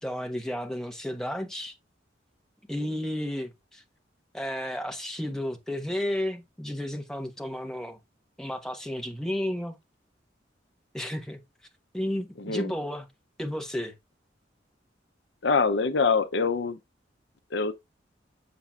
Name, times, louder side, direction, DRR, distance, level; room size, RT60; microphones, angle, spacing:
voice 1, 0.0-1.7 2.7-3.8 4.3-8.0 8.4-9.8 10.9-11.4 11.9-13.1 13.4-13.9, left 1 dB, 5° left, 1.1 m, -32 dB
voice 2, 15.4-16.8 17.5-17.8, left 4 dB, 70° left, 0.6 m, -25 dB
6.9 x 5.9 x 2.3 m
head